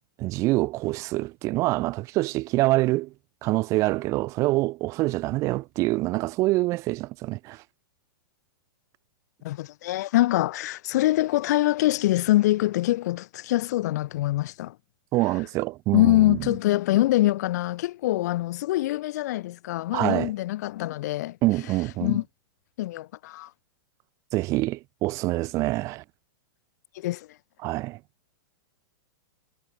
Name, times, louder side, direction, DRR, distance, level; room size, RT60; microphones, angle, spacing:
voice 1, 0.2-3.1 3.4-7.6 15.1-16.4 19.9-20.3 21.4-22.2 24.3-26.0 27.6-28.0, right 20 dB, 25° right, 2.4 m, -25 dB
voice 2, 9.4-14.8 15.9-21.4 22.0-22.2 22.8-23.5 26.9-27.3, left 16 dB, 50° left, 4.0 m, -24 dB
supercardioid pair, 170°, 12 cm